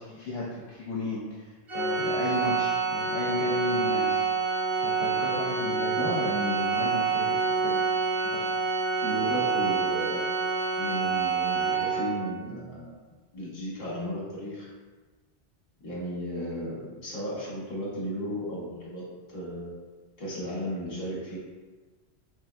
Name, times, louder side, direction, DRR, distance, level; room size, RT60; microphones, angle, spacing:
voice 1, 0.0-4.2 4.8-6.1 6.7-7.8 8.3-8.5, left 2 dB, 70° left, -5 dB, 0.8 m, -35 dB
Organ, 1.7-12.4, right 5 dB, 40° right, 0.4 m, -27 dB
voice 2, 5.9-6.7 9.0-10.3 10.8-12.9 13.3-14.7 15.8-19.7 20.2-21.4, equal, 40° left, -6 dB, 1.1 m, -34 dB
3.5 x 3.2 x 2.3 m, 1.3 s
omnidirectional pair, 1.1 m